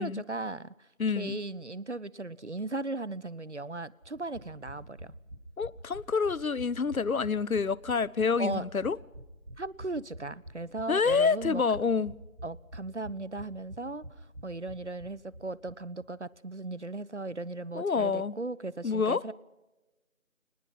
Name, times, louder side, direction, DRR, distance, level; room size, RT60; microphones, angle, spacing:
voice 1, 0.0-0.9 1.2-5.1 8.4-8.7 9.6-11.6 12.4-19.3, right 2 dB, 55° right, 0.6 m, -37 dB
voice 2, 1.0-1.4 5.6-9.0 10.9-12.1 17.7-18.4 18.8-19.2, left 5 dB, 80° left, 0.8 m, -27 dB
sound 1, 4.0-15.7 16.0-16.1 16.3-16.4, right 1 dB, 75° right, 6.2 m, -47 dB
24.0 x 20.0 x 5.7 m
figure-of-eight pair, 180°, 41 cm